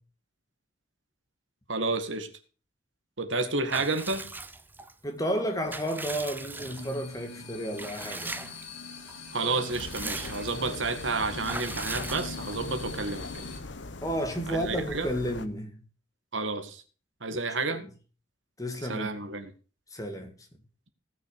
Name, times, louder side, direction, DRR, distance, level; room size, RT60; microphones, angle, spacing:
voice 1, 1.7-2.3 3.2-4.3 9.3-13.4 14.5-15.1 16.3-16.8 17.2-17.8 18.8-19.5, right 3 dB, 80° right, 2.0 m, -30 dB
Water / Bathtub (filling or washing) / Liquid, 3.7-4.9 5.4-7.1 7.8-8.7 9.1-9.2 9.5-10.7 11.4-12.7, right 3 dB, 10° right, 0.7 m, -39 dB
voice 2, 5.0-8.5 14.0-15.8 17.3-17.4 17.6-17.8 18.6-19.1 19.9-20.3, equal, 20° left, 2.2 m, -32 dB
sound 1, 6.6-13.6, left 4 dB, 90° left, 3.1 m, -43 dB
sound 2, 9.7-15.5, left 3 dB, 70° left, 1.0 m, -41 dB
17.5 x 6.6 x 5.0 m
head